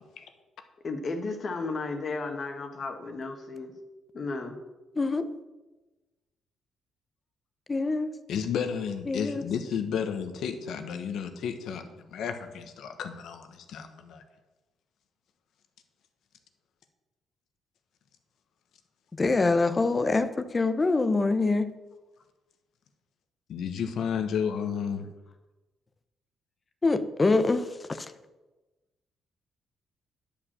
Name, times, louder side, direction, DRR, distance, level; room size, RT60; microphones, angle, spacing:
voice 1, 0.8-3.7 4.1-4.5, left 3 dB, 45° left, 5 dB, 1.6 m, -34 dB
voice 2, 7.7-8.1 9.1-9.4 19.2-20.3 20.5-21.6 26.8-27.6, left 3 dB, 25° left, 11 dB, 0.7 m, -24 dB
voice 3, 8.3-14.2 23.5-25.1, left 7 dB, 75° left, 7 dB, 1.2 m, -32 dB
10.5 x 5.2 x 7.3 m, 1.1 s
cardioid pair, 90°, 0 cm